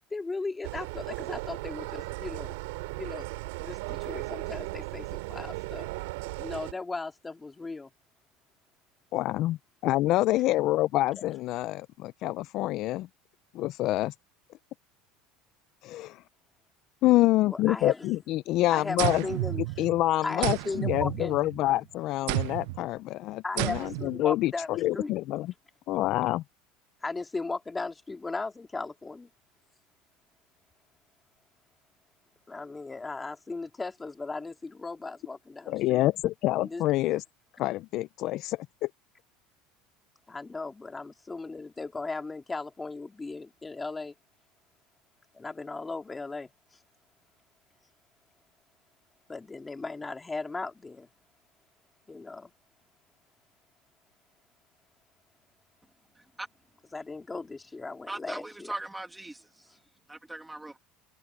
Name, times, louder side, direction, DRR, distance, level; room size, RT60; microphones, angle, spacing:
voice 1, 0.1-2.5 3.0-3.3 3.6-5.9 6.4-7.9 11.2-11.3 17.5-18.1 18.7-19.8 20.2-21.4 23.4-25.1 27.0-29.3 32.5-36.0 36.5-36.8 40.3-44.1 45.3-46.5 49.3-51.1 52.1-52.5 56.9-58.7, left 3 dB, 10° left, 2.1 m, -37 dB
sound 1, 0.6-6.7, right 24 dB, 85° right, 4.3 m, -36 dB
voice 2, 9.1-9.6 9.8-13.1 13.5-14.1 15.8-16.2 17.0-19.2 19.8-25.5 25.9-26.4 35.7-37.2 37.6-38.9, left 16 dB, 45° left, 0.3 m, -27 dB
sound 2, 19.0-20.0 20.4-21.7 22.3-22.8 23.6-24.2, right 23 dB, 65° right, 0.4 m, -31 dB
voice 3, 56.2-56.5 58.1-59.7 60.1-60.8, right 2 dB, 5° right, 2.0 m, -40 dB
cardioid pair, 170°, 0 cm